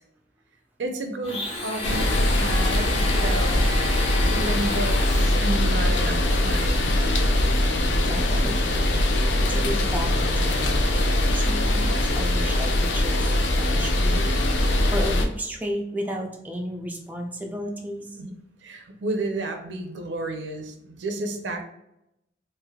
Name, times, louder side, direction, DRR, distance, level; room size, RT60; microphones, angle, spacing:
voice 1, 0.8-3.7 4.3-6.9 18.2-18.4 18.6-21.6, right 2 dB, 80° right, 5 dB, 0.6 m, -31 dB
Domestic sounds home sounds, 1.2-5.7, left 1 dB, 30° left, 0.9 m, -33 dB
sound 1, 1.8-15.3, left 1 dB, 80° left, 0.5 m, -22 dB
voice 2, 7.5-8.9 9.5-10.9 11.1-14.3 14.9-18.1, equal, 10° right, 0 dB, 0.3 m, -33 dB
3.2 x 2.9 x 2.3 m, 0.84 s
head